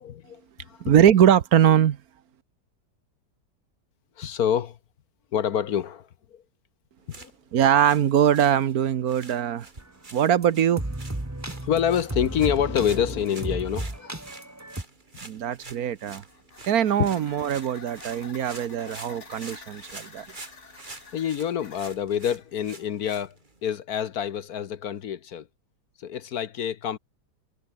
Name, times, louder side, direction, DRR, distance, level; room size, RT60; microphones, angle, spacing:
voice 1, 0.0-0.9 4.2-4.8 5.3-6.4 7.2-7.3 11.6-14.2 17.0-17.1 21.1-23.4 23.6-25.5 26.0-27.0, left 9 dB, 65° left, 1.4 m, -27 dB
voice 2, 0.8-2.0 7.5-9.7 10.1-10.8 15.2-16.2 16.7-20.2, right 9 dB, 60° right, 1.4 m, -21 dB
sound 1, 7.0-23.8, right 3 dB, 25° right, 2.7 m, -47 dB
sound 2, 9.8-9.9 10.4-10.5 10.8-14.8, right 1 dB, 10° right, 1.7 m, -33 dB
sound 3, 16.2-22.4, left 4 dB, 45° left, 2.3 m, -48 dB
omnidirectional pair, 1.8 m